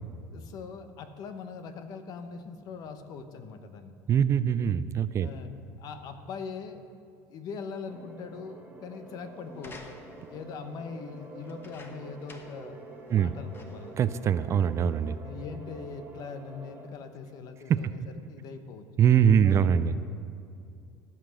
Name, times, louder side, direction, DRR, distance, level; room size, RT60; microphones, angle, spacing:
voice 1, 0.3-3.9 5.2-5.5 5.8-6.8 7.3-9.9 10.3-12.8 13.1-13.9 15.2-18.9 19.4-19.6, left 5 dB, 55° left, 9 dB, 1.0 m, -41 dB
voice 2, 4.1-5.3 13.1-13.3 14.0-15.2 17.7-17.9 19.0-20.0, right 8 dB, 40° right, 14 dB, 0.4 m, -23 dB
sound 1, 7.9-16.9, right 2 dB, 20° right, 2.1 m, -47 dB
sound 2, 9.5-10.4 11.4-12.7 13.1-13.2 13.5-14.0 14.7-14.8, left 2 dB, 30° left, 1.3 m, -50 dB
15.5 x 5.9 x 6.4 m, 2.5 s
supercardioid pair, 105°, 8 cm